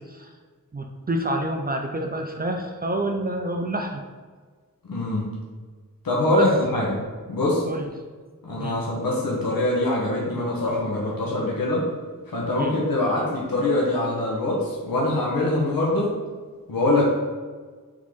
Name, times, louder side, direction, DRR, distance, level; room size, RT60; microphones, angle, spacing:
voice 1, 0.7-4.0 6.3-6.4 7.7-7.8 8.6-8.8 12.6-12.7, right 1 dB, 30° right, 3 dB, 0.4 m, -28 dB
voice 2, 4.8-5.3 6.0-7.0 7.3-7.7 8.4-11.9 12.3-16.1 16.7-17.1, left 2 dB, 85° left, -4 dB, 1.0 m, -23 dB
3.7 x 3.6 x 3.2 m, 1.5 s
wide cardioid pair, 75°, 34 cm